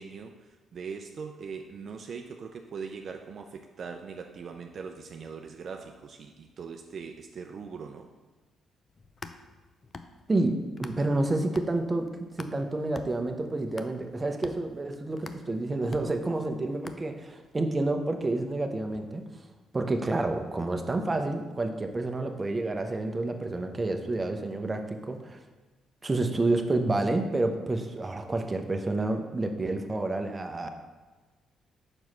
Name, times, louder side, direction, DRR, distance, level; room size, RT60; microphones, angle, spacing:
voice 1, 0.0-8.1, right 5 dB, 55° right, 4 dB, 0.5 m, -41 dB
sound 1, 8.9-11.2 11.6-17.5, left 4 dB, 35° left, 0.5 m, -47 dB
voice 2, 10.3-12.1 12.4-19.2 19.7-25.4 26.0-30.7, right 2 dB, 25° right, 5 dB, 0.8 m, -29 dB
5.4 x 4.7 x 6.0 m, 1.3 s
cardioid pair, 90°, 0 cm